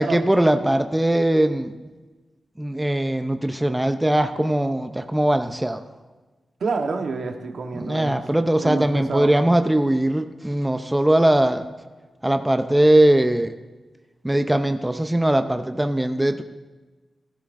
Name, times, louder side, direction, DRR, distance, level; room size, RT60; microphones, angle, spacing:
voice 1, 0.0-1.7 2.6-5.8 7.8-11.7 12.2-13.5 14.2-16.4, right 1 dB, 10° right, 7 dB, 0.5 m, -20 dB
voice 2, 6.6-8.2 8.6-9.3, right 4 dB, 70° right, 4 dB, 1.2 m, -28 dB
15.0 x 14.0 x 2.5 m, 1.3 s
wide cardioid pair, 90°, 0 cm